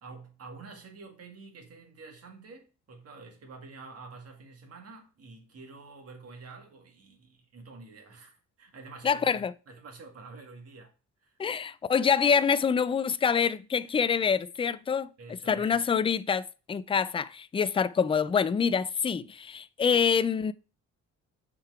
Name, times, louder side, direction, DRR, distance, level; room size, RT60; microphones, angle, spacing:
voice 1, 0.0-10.9 11.2-11.4 15.2-15.8, right 4 dB, 55° right, 1.9 m, -48 dB
voice 2, 9.0-9.5 11.4-15.1 15.5-20.5, left 6 dB, 20° left, 0.3 m, -26 dB
5.7 x 3.8 x 4.7 m
cardioid pair, 90°, 30 cm